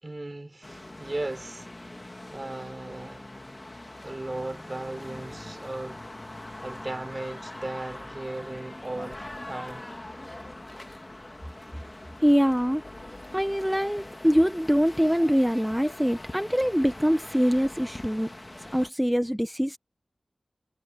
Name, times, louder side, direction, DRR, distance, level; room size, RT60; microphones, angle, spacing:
voice 1, 0.0-2.1 2.3-3.2 4.0-6.0 6.6-9.9, right 2 dB, 40° right, 4.5 m, -37 dB
sound 1, 0.6-18.9, left 1 dB, 30° left, 2.1 m, -42 dB
voice 2, 12.2-12.8 13.3-18.3 18.7-19.8, equal, 5° right, 1.2 m, -23 dB
wide cardioid pair, 50°, 0 cm